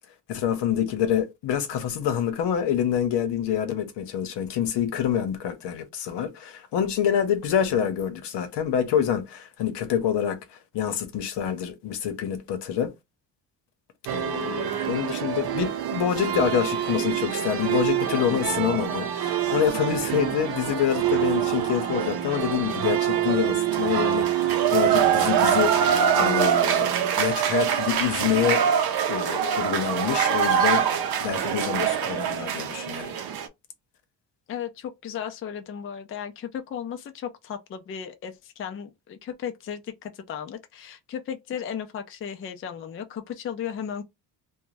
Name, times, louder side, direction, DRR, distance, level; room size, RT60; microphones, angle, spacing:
voice 1, 0.3-12.9 14.1-28.6 29.1-30.9 31.2-33.1, left 9 dB, 75° left, 0.8 m, -27 dB
sound 1, 14.1-33.5, right 9 dB, 60° right, 0.6 m, -24 dB
voice 2, 34.5-44.0, left 8 dB, 35° left, 0.4 m, -35 dB
2.5 x 2.2 x 3.1 m
cardioid pair, 125°, 42 cm